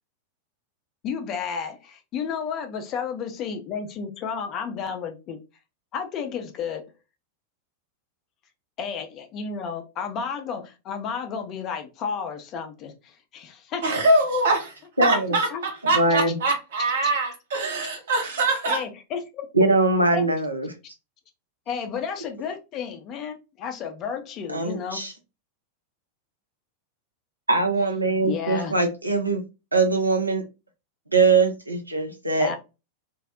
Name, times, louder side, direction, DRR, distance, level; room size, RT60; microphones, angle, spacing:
voice 1, 1.0-5.4 5.9-6.8 8.8-13.9 15.5-15.6 17.0-17.1 18.7-19.5 20.1-20.2 21.7-25.0 28.2-28.8 32.4-32.6, left 6 dB, 35° left, 0.5 m, -32 dB
voice 2, 13.8-14.6 15.0-18.8, right 2 dB, 60° right, 0.8 m, -23 dB
voice 3, 15.0-15.3 15.9-16.4 19.5-20.7 24.5-25.1 27.5-29.4 29.7-30.4 31.1-32.5, right 3 dB, 85° right, 0.5 m, -22 dB
2.6 x 2.0 x 2.4 m
figure-of-eight pair, 90°, 0 cm